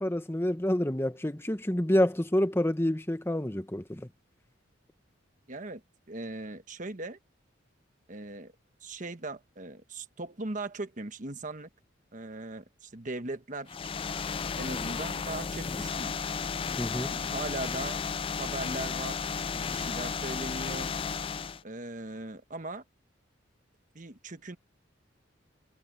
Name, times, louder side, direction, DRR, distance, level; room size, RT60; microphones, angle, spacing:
voice 1, 0.0-4.1 16.8-17.1, left 1 dB, 10° left, 1.0 m, -28 dB
voice 2, 5.5-5.8 6.1-7.2 8.1-8.5 8.8-11.7 12.1-13.8 14.6-16.1 16.9-18.0 18.4-20.9 21.6-22.8 23.9-24.6, right 2 dB, 40° right, 1.3 m, -39 dB
sound 1, 13.7-21.6, left 5 dB, 30° left, 0.4 m, -33 dB
head